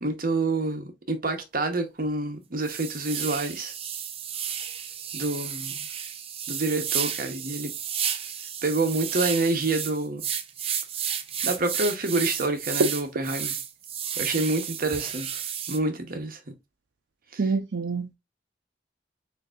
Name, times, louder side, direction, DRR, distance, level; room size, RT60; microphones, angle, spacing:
voice 1, 0.0-3.7 5.1-5.9 6.5-7.7 8.6-10.3 11.4-13.5 14.2-15.3 15.7-16.4 17.3-17.4, right 2 dB, 55° right, 1.0 m, -27 dB
sound 1, 1.4-1.5 2.0-2.1 2.6-15.8, right 8 dB, 35° right, 0.6 m, -32 dB
voice 2, 17.4-18.1, right 4 dB, 90° right, 0.5 m, -27 dB
6.5 x 2.7 x 2.4 m
head